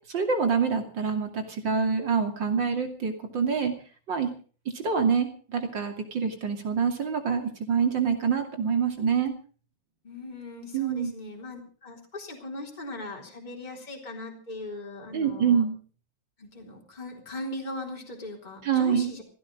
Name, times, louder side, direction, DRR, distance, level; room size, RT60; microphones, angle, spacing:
voice 1, 0.1-3.7 4.1-4.3 4.7-9.3 10.7-11.1 15.1-15.8 18.6-19.1, right 6 dB, 40° right, 4 dB, 3.1 m, -26 dB
voice 2, 10.0-15.7 16.4-19.2, left 2 dB, 15° left, 0 dB, 3.8 m, -39 dB
16.5 x 15.5 x 5.3 m, 0.41 s
omnidirectional pair, 3.4 m